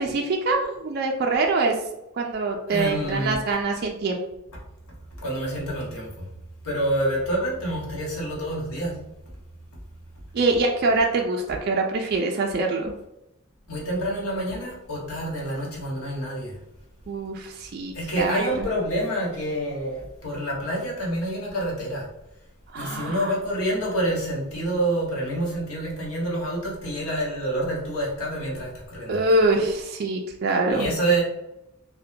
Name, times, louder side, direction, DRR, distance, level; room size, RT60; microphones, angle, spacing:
voice 1, 0.0-1.8 2.2-4.2 10.3-12.9 17.1-18.7 22.7-23.3 29.1-30.9, right 2 dB, 45° right, 1 dB, 0.3 m, -24 dB
voice 2, 2.7-3.4 5.2-6.3 6.6-9.0 13.7-16.5 17.9-22.1 22.8-29.2 30.7-31.2, right 1 dB, 85° left, -3 dB, 1.0 m, -27 dB
2.7 x 2.1 x 3.5 m, 0.89 s
head